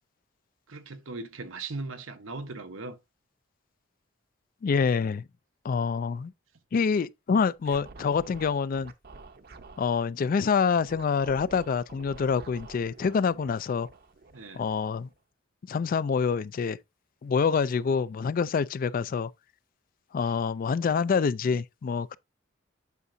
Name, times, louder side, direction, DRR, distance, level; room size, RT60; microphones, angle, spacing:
voice 1, 0.7-3.0 14.3-14.6, right 3 dB, 90° right, 1.1 m, -38 dB
voice 2, 4.6-5.3 5.6-6.3 6.7-8.9 9.8-13.9 14.5-15.1 15.7-16.8 17.2-19.3 20.1-22.2, left 5 dB, 45° left, 0.3 m, -26 dB
Scratching (performance technique), 7.6-9.9 10.9-15.2, right 3 dB, 50° right, 0.7 m, -49 dB
8.2 x 6.0 x 2.6 m
head